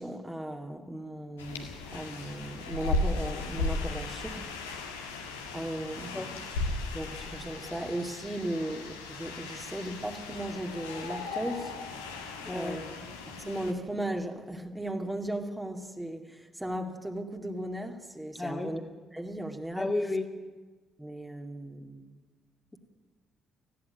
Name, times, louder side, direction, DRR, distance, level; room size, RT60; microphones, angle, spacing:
voice 1, 0.0-4.4 5.5-6.3 6.9-11.7 12.5-12.9 13.3-18.8 19.1-19.9 21.0-22.1, right 1 dB, 10° right, 3 dB, 2.3 m, -36 dB
sound 1, 1.4-13.7, left 2 dB, 90° left, 1.9 m, -36 dB
voice 2, 5.9-6.3 12.4-12.8 18.3-18.8 19.7-20.3, left 2 dB, 20° left, 4 dB, 2.4 m, -33 dB
18.5 x 14.5 x 9.6 m, 1.4 s
hypercardioid pair, 45°, 0 cm